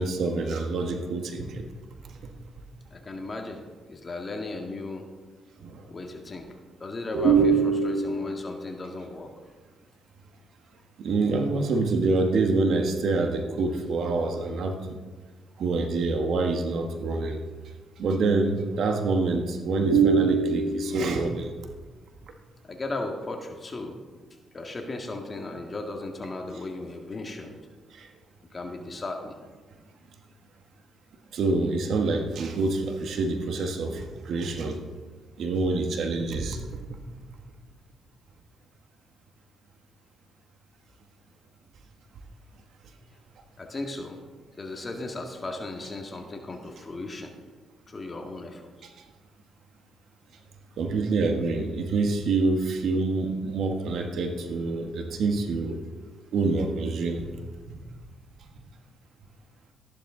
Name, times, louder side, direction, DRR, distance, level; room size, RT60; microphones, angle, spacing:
voice 1, 0.0-1.6 2.0-2.1 5.6-5.8 7.1-8.3 11.0-15.0 15.6-17.4 18.0-21.5 28.0-28.1 31.3-34.8 35.4-36.6 50.8-55.8 56.3-57.3 57.7-57.8, right 3 dB, 65° right, 5 dB, 1.4 m, -25 dB
voice 2, 2.9-5.1 5.9-6.5 6.8-7.4 7.8-9.3 15.5-15.7 22.6-24.0 24.5-27.6 28.5-29.3 43.6-44.2 44.6-47.3 47.9-48.7, left 2 dB, 30° left, 3 dB, 1.8 m, -36 dB
13.5 x 11.5 x 3.8 m, 1.4 s
cardioid pair, 90°, 0 cm